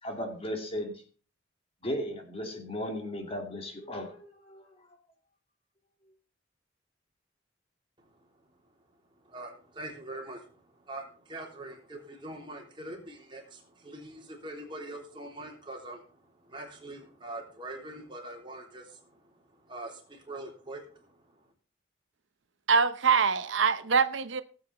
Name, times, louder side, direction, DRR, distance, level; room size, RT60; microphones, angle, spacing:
voice 1, 0.0-1.0 1.8-4.6, equal, 30° left, 2.7 m, -36 dB
voice 2, 9.3-10.6 10.9-19.2 19.7-21.1, right 1 dB, 25° right, 3.5 m, -43 dB
voice 3, 22.7-24.4, right 5 dB, 75° right, 0.7 m, -24 dB
18.0 x 8.3 x 4.1 m
head